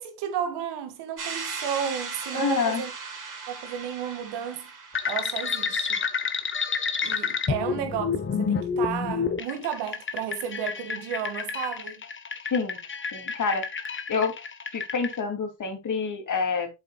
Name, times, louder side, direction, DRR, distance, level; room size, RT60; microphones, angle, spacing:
voice 1, 0.0-2.9 3.5-4.7 5.1-6.0 7.0-8.1 8.4-12.0, right 8 dB, 70° right, 2.2 m, -32 dB
sound 1, 1.2-6.0, right 5 dB, 45° right, 3.7 m, -38 dB
voice 2, 2.3-2.8 7.6-7.7 12.4-12.8 13.1-13.7 14.1-14.3 14.7-16.7, left 5 dB, 45° left, 3.1 m, -27 dB
sound 2, 4.9-15.1, left 6 dB, 30° left, 1.3 m, -29 dB
8.1 x 7.6 x 2.4 m
supercardioid pair, 70°, 42 cm